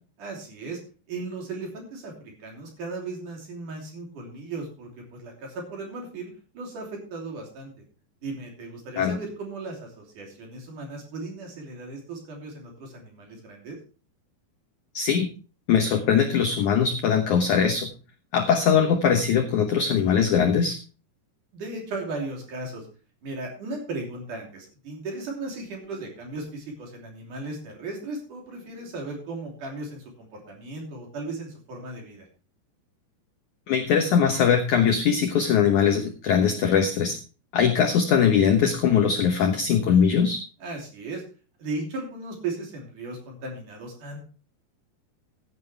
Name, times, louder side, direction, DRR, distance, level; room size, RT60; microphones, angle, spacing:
voice 1, 0.2-0.8 1.1-7.7 8.2-13.8 21.5-22.9 23.2-32.3 40.6-41.2 41.6-44.2, right 3 dB, 50° right, 0 dB, 4.3 m, -36 dB
voice 2, 14.9-15.3 15.7-17.9 18.3-20.8 33.7-37.2 37.5-40.4, left 7 dB, 70° left, 5 dB, 1.8 m, -21 dB
15.5 x 9.5 x 3.3 m, 0.37 s
omnidirectional pair, 4.9 m